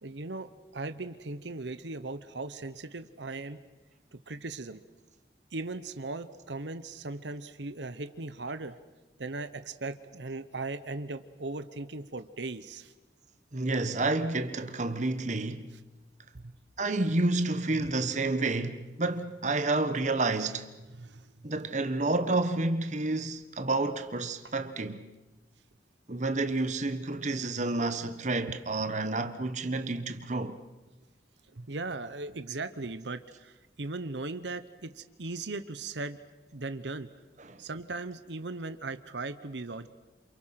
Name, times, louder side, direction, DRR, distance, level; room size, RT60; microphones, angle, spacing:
voice 1, 0.0-3.6 4.1-4.8 5.5-8.8 9.2-12.9 21.0-21.3 27.2-27.3 31.5-36.2 36.5-37.1 37.6-39.9, right 3 dB, 90° right, 1.1 m, -38 dB
voice 2, 13.5-15.7 16.8-20.7 21.4-25.1 26.1-30.6 37.4-37.6, right 2 dB, 45° right, 1.3 m, -30 dB
29.0 x 27.5 x 5.9 m
head